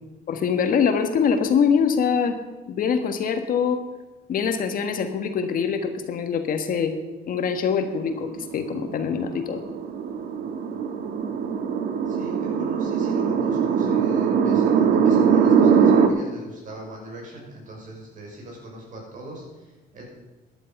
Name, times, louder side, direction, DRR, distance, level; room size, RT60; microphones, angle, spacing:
voice 1, 0.3-2.3 2.7-3.8 4.3-6.9 7.3-9.6, left 6 dB, 55° left, 7 dB, 1.6 m, -23 dB
sound 1, 8.0-16.1, right 6 dB, 70° right, 1.5 m, -21 dB
voice 2, 12.1-20.0, right 1 dB, 50° right, -1 dB, 6.0 m, -40 dB
14.0 x 11.0 x 5.4 m, 1.2 s
cardioid pair, 110°, 17 cm